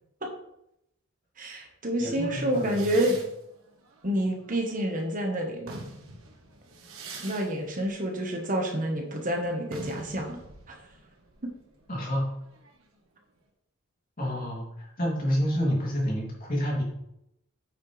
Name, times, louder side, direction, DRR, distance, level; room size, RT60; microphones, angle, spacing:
voice 1, 1.4-3.2 4.0-5.8 7.2-10.4 10.7-10.8, equal, 40° right, 2 dB, 1.3 m, -28 dB
voice 2, 2.0-3.0 11.9-12.3 14.2-16.8, equal, 40° left, -4 dB, 2.9 m, -29 dB
sound 1, 2.5-5.0 5.4-13.0, right 2 dB, 80° right, 1.4 m, -46 dB
8.9 x 6.5 x 3.3 m, 0.80 s
head